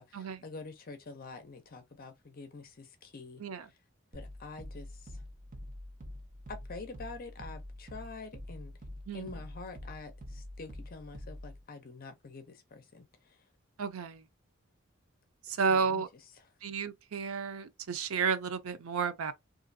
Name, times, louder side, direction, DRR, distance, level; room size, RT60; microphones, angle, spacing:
voice 1, 0.0-3.4 4.1-5.2 6.5-8.7 9.1-13.4 15.7-16.0 16.4-16.5, left 3 dB, 45° left, 0.6 m, -46 dB
sound 1, 4.1-11.6, left 1 dB, 40° right, 0.8 m, -46 dB
voice 2, 13.8-14.2 15.6-16.1 16.6-19.3, right 5 dB, 90° right, 0.5 m, -32 dB
3.1 x 2.5 x 2.5 m
head